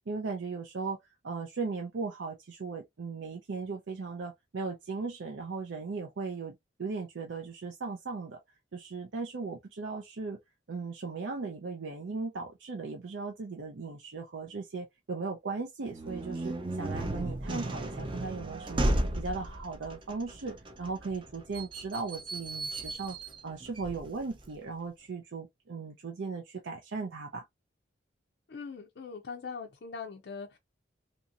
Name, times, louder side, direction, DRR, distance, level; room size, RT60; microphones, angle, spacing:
voice 1, 0.1-1.0 1.2-8.4 8.7-10.4 10.7-18.9 19.2-23.2 23.4-27.4, right 4 dB, 75° right, 0.5 m, -37 dB
sound 1, 15.9-24.5, right 1 dB, 25° right, 0.5 m, -35 dB
voice 2, 28.5-30.6, left 5 dB, 60° left, 0.4 m, -41 dB
2.9 x 2.7 x 2.4 m
head